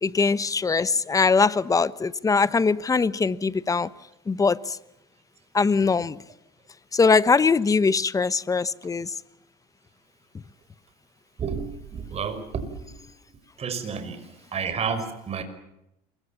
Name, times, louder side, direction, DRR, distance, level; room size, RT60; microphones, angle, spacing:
voice 1, 0.0-3.9 4.3-4.8 5.5-6.2 6.9-9.1, left 4 dB, 20° left, 1.0 m, -22 dB
voice 2, 11.4-13.0 13.6-14.2 14.5-15.4, right 6 dB, 35° right, 5.7 m, -31 dB
27.5 x 23.5 x 7.2 m
supercardioid pair, 115°, 18 cm